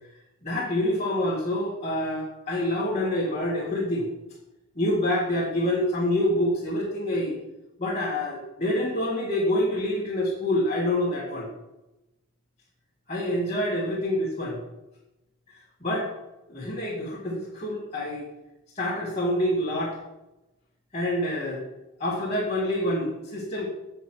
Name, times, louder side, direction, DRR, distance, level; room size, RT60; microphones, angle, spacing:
voice 1, 0.4-4.1 4.8-7.4 7.8-11.5 13.1-14.6 15.8-16.1 16.5-18.3 18.7-20.0 20.9-21.6 22.0-23.7, left 1 dB, 30° left, -6 dB, 2.1 m, -26 dB
8.4 x 6.6 x 6.2 m, 0.96 s
head